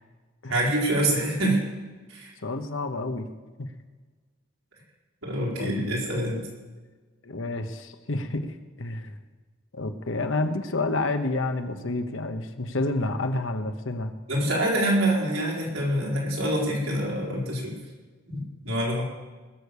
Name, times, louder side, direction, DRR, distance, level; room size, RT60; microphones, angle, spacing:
voice 1, 0.5-1.6 2.1-2.3 5.2-6.4 14.3-17.7 18.3-19.0, right 1 dB, 85° right, -4 dB, 4.5 m, -25 dB
voice 2, 2.4-3.3 3.6-3.7 5.6-6.0 7.2-9.1 9.7-14.1, left 2 dB, 70° left, 7 dB, 1.1 m, -29 dB
20.0 x 6.7 x 7.0 m, 1.3 s
head